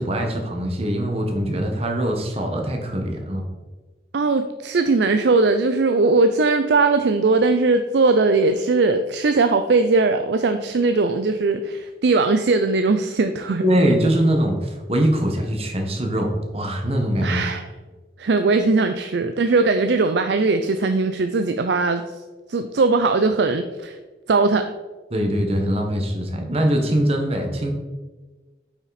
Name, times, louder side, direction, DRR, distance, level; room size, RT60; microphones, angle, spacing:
voice 1, 0.0-3.4 13.6-17.4 25.1-27.7, equal, 35° right, 2 dB, 1.4 m, -22 dB
voice 2, 4.1-13.6 17.2-17.6 18.2-22.0 22.5-24.0 24.3-24.6, right 3 dB, 80° right, 8 dB, 0.5 m, -19 dB
8.3 x 5.9 x 4.1 m, 1.3 s
head